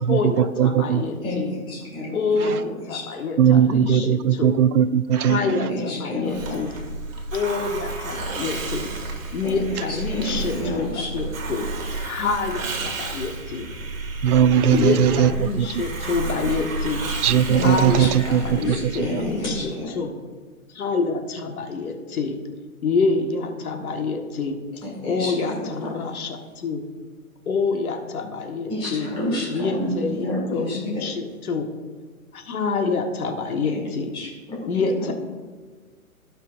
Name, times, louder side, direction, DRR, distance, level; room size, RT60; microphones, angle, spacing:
voice 1, 0.0-1.6 2.1-4.6 5.1-6.7 7.3-8.9 9.3-11.7 12.0-13.7 14.7-17.0 17.6-20.2 20.7-22.4 22.8-24.6 25.0-26.8 27.4-29.1 29.5-31.7 32.3-34.1 34.7-35.1, left 4 dB, 75° left, 4 dB, 1.4 m, -27 dB
voice 2, 0.6-1.0 3.4-5.4 14.2-15.7 17.2-19.2, right 9 dB, 85° right, 15 dB, 0.6 m, -19 dB
voice 3, 1.2-2.6 2.9-3.3 5.4-6.6 9.4-9.6 9.9-11.1 17.5-19.9 24.8-25.3 25.8-25.9 28.7-31.0 34.1-34.8, left 1 dB, 10° left, -4 dB, 1.8 m, -30 dB
Hiss, 6.3-19.8, right 3 dB, 60° right, 1.8 m, -31 dB
16.5 x 5.6 x 2.5 m, 1.5 s
hypercardioid pair, 160°, 44 cm